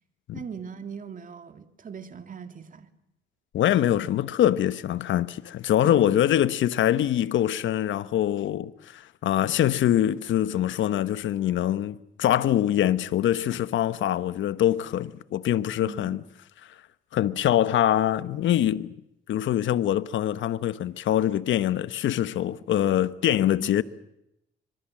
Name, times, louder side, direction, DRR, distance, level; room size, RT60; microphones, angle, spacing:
voice 1, 0.3-2.9 5.8-6.2 15.8-16.2 23.6-23.7, right 6 dB, 40° right, 2.4 m, -40 dB
voice 2, 3.5-16.2 17.1-18.9 19.3-23.8, left 11 dB, 75° left, 1.1 m, -24 dB
25.0 x 24.0 x 7.5 m
cardioid pair, 90°, 20 cm